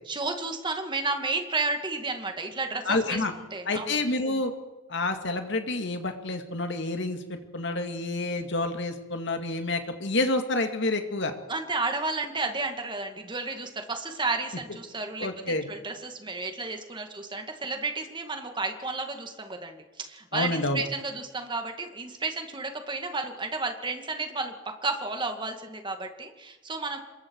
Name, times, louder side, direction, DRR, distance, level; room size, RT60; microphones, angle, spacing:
voice 1, 0.1-4.0 11.5-24.5 24.8-27.0, right 3 dB, 25° right, 5 dB, 2.2 m, -32 dB
voice 2, 2.9-3.3 3.7-4.5 4.9-11.3 15.2-15.6 20.3-20.8, left 2 dB, 65° left, 5 dB, 2.4 m, -28 dB
26.5 x 22.0 x 4.8 m, 1.2 s
head